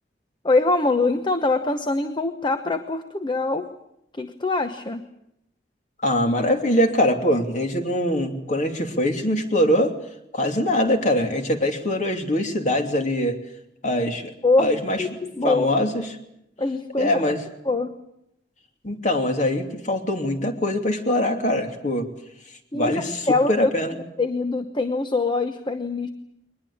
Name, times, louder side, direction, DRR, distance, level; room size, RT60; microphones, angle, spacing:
voice 1, 0.4-3.7 4.2-5.0 14.4-14.7 15.0-15.7 16.6-17.1 17.6-17.9 22.7-23.7 24.2-26.1, left 3 dB, 25° left, 8 dB, 1.0 m, -23 dB
voice 2, 6.0-9.9 10.3-13.4 13.8-14.3 14.6-15.0 15.4-16.1 17.0-17.4 18.8-22.1 22.7-23.2 23.5-24.0, left 1 dB, 45° left, 5 dB, 3.0 m, -23 dB
22.5 x 20.5 x 8.6 m, 0.81 s
head